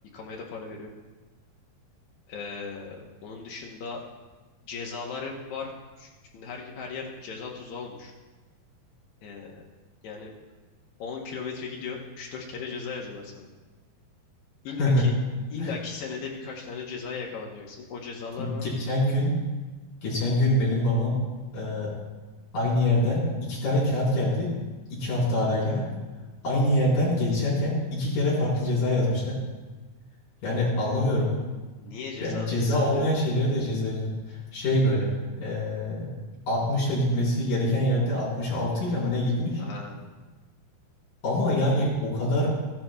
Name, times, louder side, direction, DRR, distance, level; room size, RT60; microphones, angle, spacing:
voice 1, 0.1-0.9 2.3-4.0 4.7-5.7 6.0-8.1 9.2-9.6 10.0-10.3 11.0-13.5 14.6-15.1 15.5-18.6 31.8-33.1 39.6-40.0, left 5 dB, 85° left, -1 dB, 1.6 m, -37 dB
voice 2, 18.4-19.3 20.0-21.2 21.5-21.9 22.5-24.5 24.9-25.8 26.4-29.4 30.4-31.3 32.2-35.1 35.4-36.1 36.5-39.6 41.2-42.5, left 1 dB, 55° left, -8 dB, 5.6 m, -25 dB
15.0 x 11.5 x 2.3 m, 1.3 s
omnidirectional pair, 4.7 m